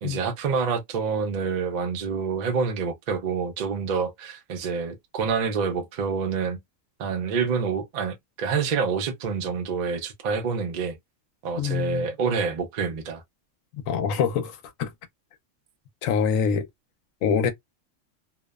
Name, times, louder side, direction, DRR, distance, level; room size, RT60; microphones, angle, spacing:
voice 1, 0.0-6.6 7.0-11.0 11.4-13.2, right 5 dB, 55° right, 0.5 m, -27 dB
voice 2, 11.6-12.1 13.8-14.9 16.0-16.7 17.2-17.5, left 7 dB, 90° left, 1.0 m, -25 dB
2.7 x 2.0 x 2.2 m
omnidirectional pair, 1.3 m